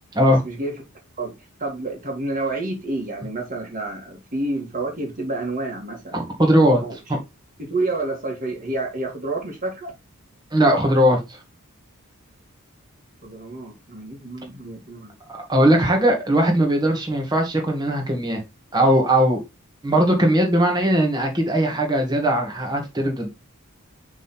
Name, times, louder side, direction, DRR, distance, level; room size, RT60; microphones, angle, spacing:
voice 1, 0.4-0.8 1.2-6.2 6.8-7.0 7.6-9.9 13.2-15.1, right 2 dB, 40° right, 2.4 m, -29 dB
voice 2, 6.1-6.8 10.5-11.2 15.3-18.4 18.7-19.4 19.8-23.3, equal, 20° right, 2.1 m, -19 dB
6.0 x 3.9 x 4.5 m
head